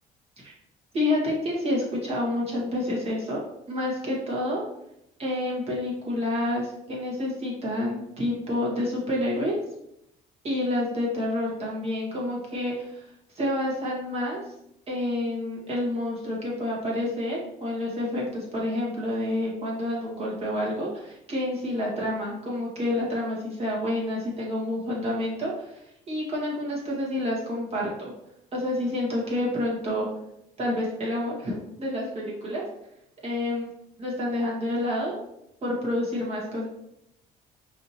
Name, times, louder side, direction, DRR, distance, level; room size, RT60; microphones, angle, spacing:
voice 1, 0.9-3.4 3.7-4.6 5.2-9.6 10.4-13.1 13.3-14.4 14.9-28.1 28.5-30.1 30.6-32.6 33.2-33.7 34.0-35.2 35.6-36.7, left 1 dB, 35° right, -4 dB, 1.5 m, -28 dB
4.9 x 2.9 x 2.8 m, 0.80 s
cardioid pair, 110°, 17 cm